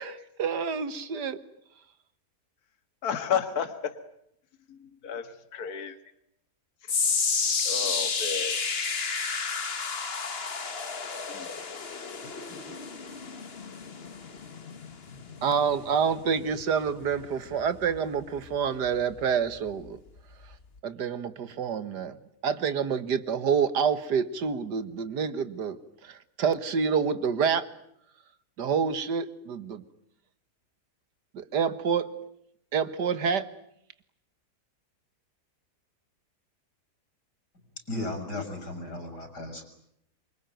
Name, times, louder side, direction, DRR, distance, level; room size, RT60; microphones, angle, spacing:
voice 1, 0.0-1.4 15.4-20.0 20.8-22.2 22.4-27.7 28.6-29.8 31.3-32.1 32.7-33.5, right 6 dB, 85° right, 13 dB, 2.0 m, -28 dB
voice 2, 3.0-4.0 4.7-4.8 5.0-6.0 7.7-8.6 11.3-11.5 12.5-12.6, left 7 dB, 65° left, 9 dB, 2.1 m, -32 dB
sound 1, 6.9-19.2 19.5-19.9 20.5-20.6, left 5 dB, 40° left, 1.6 m, -32 dB
voice 3, 37.9-39.6, left 2 dB, 85° left, 7 dB, 6.6 m, -35 dB
26.5 x 24.5 x 9.2 m, 0.74 s
omnidirectional pair, 1.7 m